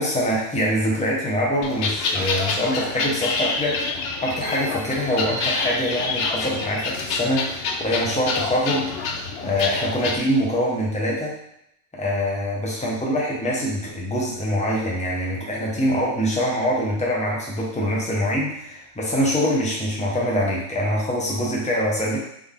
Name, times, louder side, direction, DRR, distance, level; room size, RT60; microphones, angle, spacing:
voice 1, 0.0-8.9 9.4-11.3 11.9-22.2, equal, 5° left, -4 dB, 0.7 m, -24 dB
sound 1, 1.6-10.2, left 4 dB, 65° left, 0.7 m, -27 dB
sound 2, 4.4-6.3, right 7 dB, 65° right, 1.0 m, -38 dB
3.9 x 3.4 x 3.6 m, 0.78 s
omnidirectional pair, 1.3 m